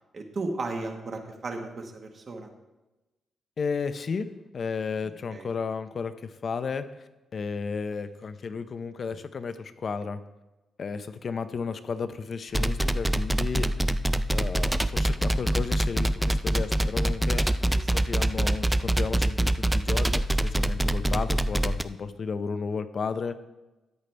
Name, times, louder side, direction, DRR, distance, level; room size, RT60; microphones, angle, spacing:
voice 1, 0.1-2.5 5.3-5.5 17.6-17.8, right 3 dB, 35° right, 3 dB, 1.3 m, -35 dB
voice 2, 3.6-4.3 4.5-10.2 10.8-13.7 14.3-17.6 17.9-23.4, left 5 dB, 40° left, 11 dB, 0.6 m, -33 dB
sound 1, 12.5-21.8, right 1 dB, 5° right, 0.3 m, -24 dB
13.5 x 9.3 x 3.3 m, 1.1 s
cardioid pair, 150°, 0 cm